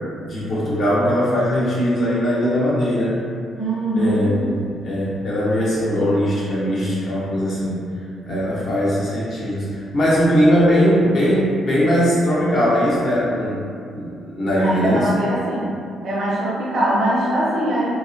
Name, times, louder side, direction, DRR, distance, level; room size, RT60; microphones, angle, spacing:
voice 1, 0.3-3.2 4.0-7.9 8.2-13.6 13.9-15.1, equal, 60° left, -7 dB, 0.8 m, -20 dB
voice 2, 3.6-4.4 14.6-15.7 16.0-17.9, right 1 dB, 60° right, -7 dB, 0.7 m, -22 dB
2.3 x 2.0 x 2.6 m, 2.3 s
cardioid pair, 90°, 0 cm